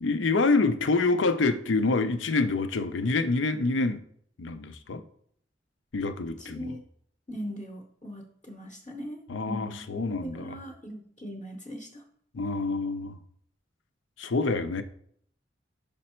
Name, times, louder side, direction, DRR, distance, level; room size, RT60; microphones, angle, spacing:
voice 1, 0.0-4.0 4.4-5.0 5.9-6.7 9.3-10.6 12.3-13.1 14.2-14.8, left 3 dB, 90° left, 0.6 m, -26 dB
voice 2, 6.4-6.8 7.3-12.0, equal, 30° left, 0.8 m, -40 dB
5.4 x 5.1 x 4.3 m
head